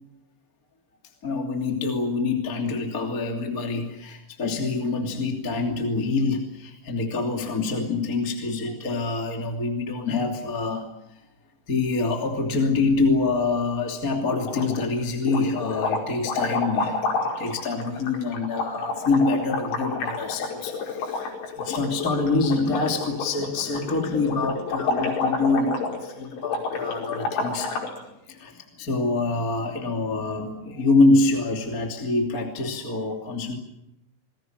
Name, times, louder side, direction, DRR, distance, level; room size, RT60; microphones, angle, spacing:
voice 1, 1.2-10.9 11.7-27.8 28.3-33.6, left 3 dB, 25° left, 3 dB, 2.5 m, -25 dB
sound 1, 14.3-14.9 15.2-28.0, left 4 dB, 85° left, 7.5 m, -30 dB
28.5 x 21.0 x 7.9 m, 0.84 s
omnidirectional pair, 5.4 m